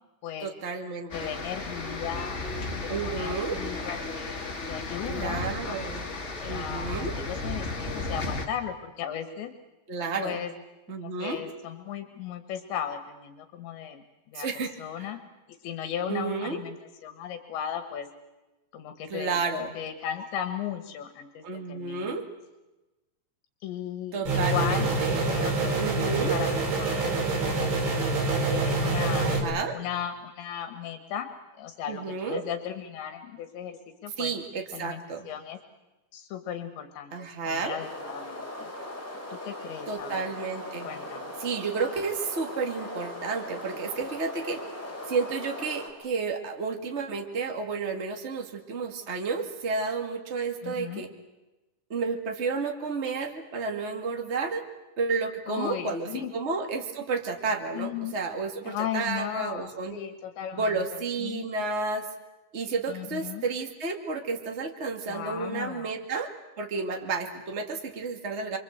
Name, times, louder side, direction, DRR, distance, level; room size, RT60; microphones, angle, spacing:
voice 1, 0.4-1.1 2.9-3.6 5.1-6.1 6.5-7.1 9.9-10.4 10.9-11.4 14.3-14.7 15.0-15.1 16.1-16.6 19.1-19.7 21.4-22.2 24.1-25.3 25.8-26.4 29.2-29.8 31.9-32.4 34.2-35.3 37.1-37.8 39.9-40.9 41.4-44.6 45.1-51.1 51.9-54.6 55.0-60.0 60.5-62.1 62.5-68.6, right 4 dB, 50° right, 4 dB, 0.7 m, -31 dB
voice 2, 1.1-2.4 3.0-6.0 6.4-9.5 10.2-10.5 11.2-14.0 14.3-15.2 15.6-16.8 17.0-18.1 18.7-19.4 19.8-22.2 23.6-25.0 25.3-25.8 26.1-28.2 28.5-29.3 29.7-31.3 31.6-34.3 34.7-35.6 36.1-37.1 37.4-38.7 39.3-40.3 40.9-41.3 50.6-51.0 55.5-56.3 57.7-58.2 58.7-60.8 61.2-61.5 62.9-63.4 65.1-65.9, left 9 dB, 75° left, 8 dB, 3.6 m, -36 dB
sound 1, 1.1-8.5, left 2 dB, 30° left, 1.3 m, -34 dB
sound 2, 24.3-29.4, right 3 dB, 90° right, 7.3 m, -26 dB
sound 3, 37.8-45.9, left 1 dB, 5° left, 3.6 m, -39 dB
28.5 x 24.5 x 8.0 m, 1.1 s
omnidirectional pair, 5.2 m